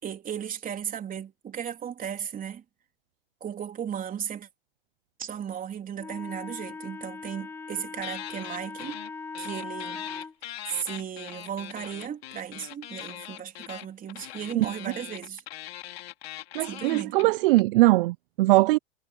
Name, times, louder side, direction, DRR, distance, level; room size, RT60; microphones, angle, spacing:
voice 1, 0.0-2.6 3.4-4.5 5.2-9.0 9.4-10.2 10.7-15.4 16.7-17.1, right 8 dB, 25° right, 3.7 m, -35 dB
Wind instrument woodwind instrument, 6.0-10.3, left 4 dB, 5° left, 0.4 m, -39 dB
sound 1, 8.0-9.1 9.3-17.6, left 13 dB, 70° left, 3.9 m, -41 dB
voice 2, 16.5-18.8, right 20 dB, 60° right, 0.7 m, -21 dB
hypercardioid pair, 100°, 31 cm